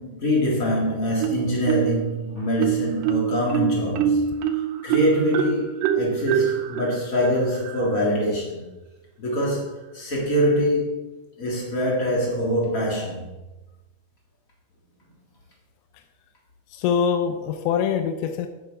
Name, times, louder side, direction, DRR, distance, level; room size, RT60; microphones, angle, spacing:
voice 1, 0.0-4.2 4.8-8.6 9.2-11.0 11.4-13.3, equal, 75° left, -3 dB, 0.7 m, -24 dB
Marimba xylophone, 1.2-2.1 2.6-8.1, right 9 dB, 85° right, 2.8 m, -25 dB
voice 2, 16.7-18.5, left 7 dB, 90° left, 7 dB, 2.9 m, -24 dB
8.5 x 7.4 x 4.7 m, 1.1 s
omnidirectional pair, 4.9 m